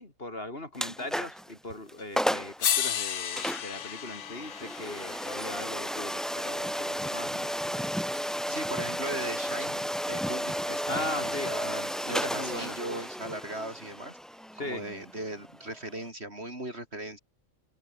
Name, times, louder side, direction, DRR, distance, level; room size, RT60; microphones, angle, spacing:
voice 1, 0.0-7.9 10.9-11.5 12.2-12.8 14.5-14.8, left 1 dB, 50° left, 4.6 m, -39 dB
sound 1, 0.7-1.5 1.9-2.0 2.2-2.6 3.4-16.1, equal, ahead, 2.4 m, -33 dB
sound 2, 2.0-2.1 2.6-6.8 8.1-8.2, left 9 dB, 65° left, 1.2 m, -34 dB
voice 2, 8.5-14.2 14.6-17.2, right 1 dB, 55° right, 6.7 m, -38 dB
open air
omnidirectional pair, 1.3 m